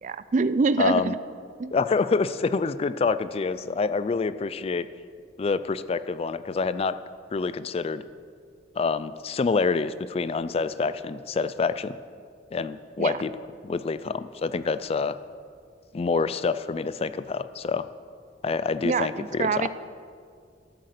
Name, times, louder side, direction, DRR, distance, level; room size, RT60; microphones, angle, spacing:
voice 1, 0.0-1.2 1.6-1.8 13.0-13.1 18.8-19.7, right 4 dB, 45° right, 15 dB, 0.4 m, -25 dB
voice 2, 0.8-1.1 1.7-4.9 5.4-7.0 7.3-8.0 8.8-11.9 12.5-13.3 13.6-15.1 15.9-17.9 18.4-19.7, left 4 dB, 35° left, 14 dB, 0.3 m, -27 dB
12.5 x 7.9 x 6.6 m, 2.2 s
head